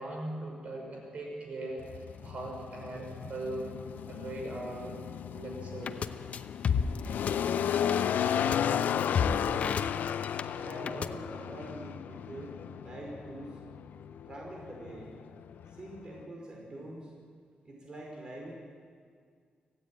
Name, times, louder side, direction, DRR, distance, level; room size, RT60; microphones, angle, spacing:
voice 1, 0.0-5.0 5.3-6.0, right 1 dB, 50° right, 1 dB, 5.6 m, -40 dB
sound 1, 1.8-16.3, left 9 dB, 90° left, 0.6 m, -34 dB
sound 2, 5.9-6.1 6.3-7.3 7.6-7.9 8.5-8.6 8.8-10.4 10.7-11.1, left 6 dB, 50° left, 0.9 m, -30 dB
voice 2, 8.4-9.9 10.5-13.6 14.2-15.1 15.7-17.1 17.6-18.5, right 1 dB, 30° right, -2 dB, 5.1 m, -44 dB
26.0 x 16.5 x 9.0 m, 2.1 s
wide cardioid pair, 160°, 3 cm